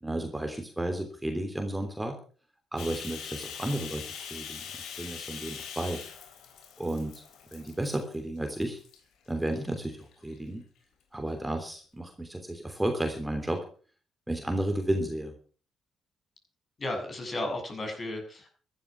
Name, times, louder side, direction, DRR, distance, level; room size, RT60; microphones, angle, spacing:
voice 1, 0.0-2.2 2.7-6.0 6.8-7.1 7.5-8.8 9.3-10.6 11.1-13.7 14.3-15.3, right 1 dB, 10° right, 4 dB, 3.2 m, -32 dB
Bathtub (filling or washing), 2.8-8.2 8.6-9.0 9.5-10.3, left 7 dB, 80° left, 3.6 m, -42 dB
voice 2, 16.8-18.5, left 1 dB, 40° left, 4 dB, 7.3 m, -34 dB
14.0 x 12.5 x 6.2 m, 0.42 s
cardioid pair, 90°, 0 cm